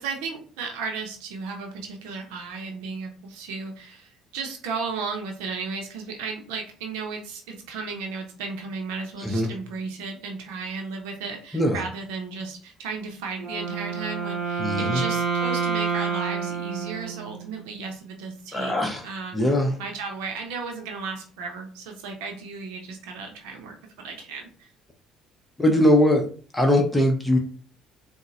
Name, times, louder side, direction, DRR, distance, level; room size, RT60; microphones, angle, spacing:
voice 1, 0.0-18.7 19.0-19.5 19.8-24.7, right 4 dB, 90° right, 2 dB, 0.6 m, -34 dB
Wind instrument woodwind instrument, 13.4-17.6, right 5 dB, 35° right, 1.0 m, -28 dB
voice 2, 14.6-15.0 18.5-19.0 19.3-19.8 25.6-26.3 26.5-27.4, left 1 dB, 10° left, 1 dB, 0.7 m, -21 dB
3.9 x 2.0 x 2.5 m, 0.42 s
supercardioid pair, 80°, 0 cm